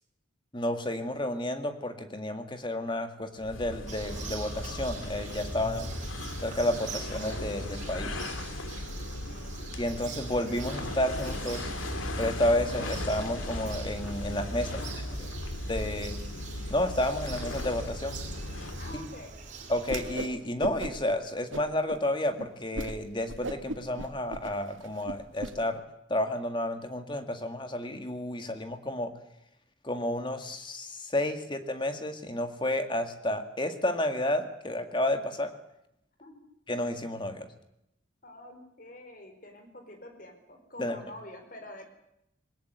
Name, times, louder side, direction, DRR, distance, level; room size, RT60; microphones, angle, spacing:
voice 1, 0.5-5.9 6.4-8.2 9.8-11.7 12.2-14.7 15.7-16.2 16.7-18.2 19.7-25.8 26.1-29.1 29.8-35.5 36.7-37.5 40.8-41.0, left 1 dB, 25° left, 7 dB, 1.9 m, -31 dB
sound 1, 3.4-19.2, left 1 dB, 85° left, 2.7 m, -37 dB
Bird vocalization bird call bird song, 3.9-20.3, right 2 dB, 40° right, 4.1 m, -42 dB
voice 2, 9.0-9.6 14.6-15.4 18.8-19.4 36.2-36.4 38.2-41.9, left 1 dB, 45° left, 6 dB, 4.7 m, -47 dB
Whoosh swoosh swish, 19.8-20.3 20.6-21.1 21.5-22.0 22.4-22.5 22.7-22.9 23.3-25.5, right 2 dB, 75° right, 2.0 m, -37 dB
21.5 x 19.0 x 8.1 m, 0.80 s
head